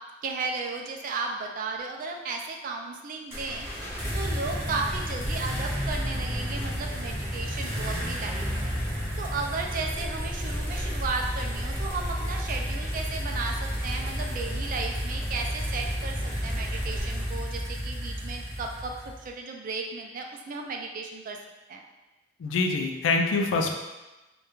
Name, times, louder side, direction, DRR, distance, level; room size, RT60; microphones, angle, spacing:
voice 1, 0.2-3.7 4.1-8.8 9.2-21.4 21.7-21.8, right 4 dB, 45° right, 2 dB, 0.3 m, -34 dB
sound 1, 3.3-17.3, equal, 15° left, 0.4 m, -41 dB
sound 2, 3.3-19.3, equal, 15° right, 0.8 m, -32 dB
voice 2, 22.4-23.7, left 3 dB, 75° left, 3 dB, 0.3 m, -25 dB
2.3 x 2.2 x 3.0 m, 1.1 s
head